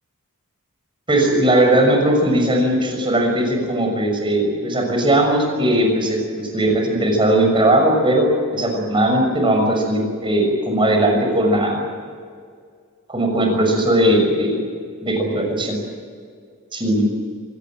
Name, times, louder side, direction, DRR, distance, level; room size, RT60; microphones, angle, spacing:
voice 1, 1.1-11.8 13.1-14.6 15.0-15.8 16.7-17.0, right 1 dB, 25° right, 2 dB, 6.2 m, -18 dB
24.5 x 18.5 x 8.9 m, 2.1 s
head